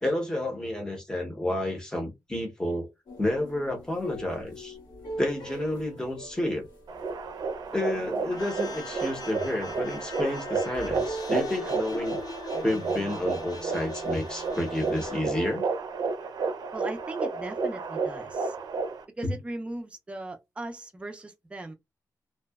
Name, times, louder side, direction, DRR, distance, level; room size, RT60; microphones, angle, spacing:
voice 1, 0.0-2.9 3.2-4.8 5.2-6.7 7.7-12.2 12.6-15.6 19.2-19.4, left 1 dB, 10° left, 0.7 m, -30 dB
sound 1, 3.1-15.5, left 1 dB, 85° left, 1.4 m, -41 dB
sound 2, 6.9-19.0, right 4 dB, 80° right, 0.4 m, -32 dB
sound 3, 8.3-15.2, left 6 dB, 65° left, 0.4 m, -46 dB
voice 2, 16.7-18.6 19.2-21.7, right 2 dB, 15° right, 0.4 m, -38 dB
2.7 x 2.1 x 2.2 m
wide cardioid pair, 150°, 7 cm